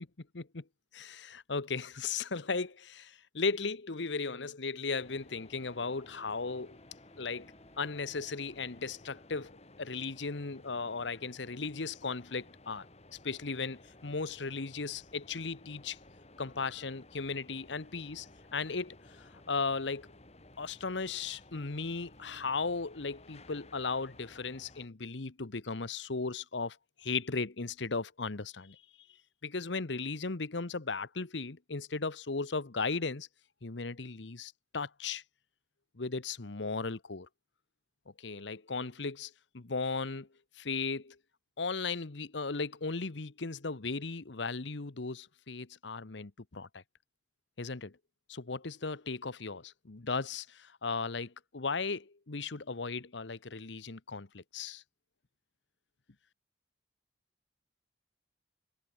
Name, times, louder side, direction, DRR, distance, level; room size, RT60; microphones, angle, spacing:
voice 1, 0.2-0.6 0.9-6.8 7.2-9.5 9.8-12.8 13.2-16.0 16.4-20.1 20.6-28.8 29.4-33.3 33.6-35.2 35.9-37.3 38.2-40.3 40.6-41.2 41.6-46.8 47.6-47.9 48.3-54.8, left 4 dB, 80° left, 1.1 m, -36 dB
sound 1, 5.0-24.9, left 2 dB, 35° left, 4.3 m, -57 dB
Wind instrument woodwind instrument, 5.7-9.8, left 1 dB, 20° left, 5.7 m, -64 dB
head